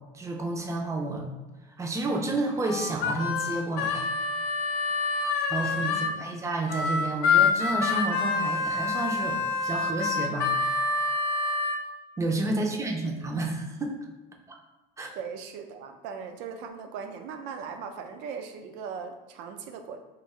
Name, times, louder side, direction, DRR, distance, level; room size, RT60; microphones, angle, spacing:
voice 1, 0.1-1.3 1.8-4.1 5.1-10.9 12.2-14.0 15.0-15.1, right 2 dB, 15° right, 1 dB, 0.4 m, -30 dB
Harmonica, 2.6-6.1 6.7-11.8, left 4 dB, 60° left, 0.5 m, -27 dB
voice 2, 5.9-6.2 12.4-12.8 15.1-20.0, right 6 dB, 75° right, 6 dB, 0.5 m, -39 dB
3.1 x 2.5 x 3.5 m, 1.1 s
cardioid pair, 145°, 18 cm